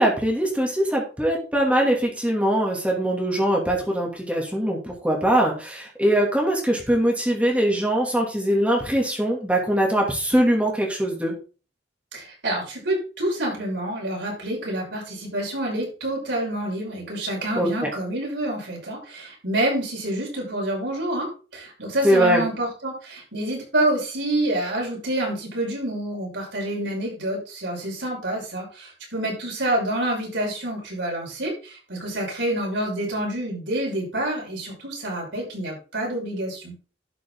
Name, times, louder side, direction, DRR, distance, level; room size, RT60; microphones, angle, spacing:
voice 1, 0.0-11.3 17.6-17.9 22.0-22.4, right 1 dB, 5° right, -1 dB, 2.8 m, -22 dB
voice 2, 12.1-36.7, right 1 dB, 85° right, -2 dB, 6.5 m, -27 dB
12.0 x 6.3 x 3.9 m, 0.35 s
head